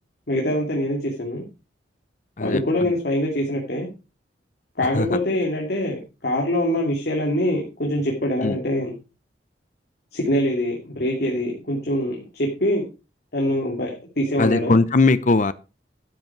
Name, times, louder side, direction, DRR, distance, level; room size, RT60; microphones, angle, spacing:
voice 1, 0.3-1.4 2.4-3.9 4.8-8.9 10.1-12.8 13.3-14.7, left 1 dB, 60° left, 3.0 m, -24 dB
voice 2, 2.4-2.9 4.8-5.1 8.4-8.6 14.4-15.5, left 3 dB, 45° left, 0.7 m, -20 dB
12.5 x 8.1 x 4.6 m
head